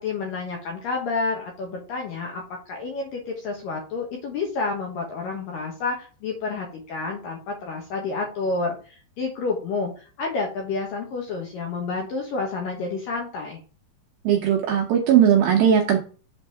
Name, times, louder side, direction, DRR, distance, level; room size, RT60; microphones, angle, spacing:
voice 1, 0.0-13.6, left 3 dB, 65° left, 1 dB, 2.3 m, -29 dB
voice 2, 14.3-16.0, right 9 dB, 75° right, 0 dB, 2.2 m, -18 dB
7.9 x 4.0 x 4.6 m, 0.37 s
omnidirectional pair, 5.2 m